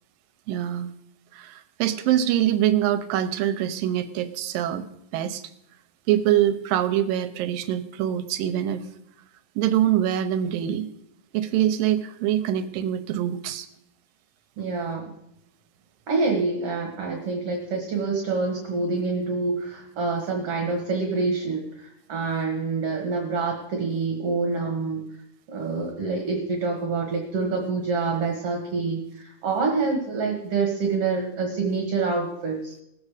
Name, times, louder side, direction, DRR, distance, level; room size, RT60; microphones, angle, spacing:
voice 1, 0.5-0.9 1.3-4.8 5.1-5.4 6.1-8.8 9.6-10.9 11.3-13.7, right 11 dB, 80° right, 9 dB, 2.3 m, -24 dB
voice 2, 14.6-15.1 16.1-25.0 25.5-32.7, right 4 dB, 55° right, 1 dB, 2.0 m, -26 dB
19.0 x 7.3 x 4.9 m, 0.80 s
omnidirectional pair, 4.1 m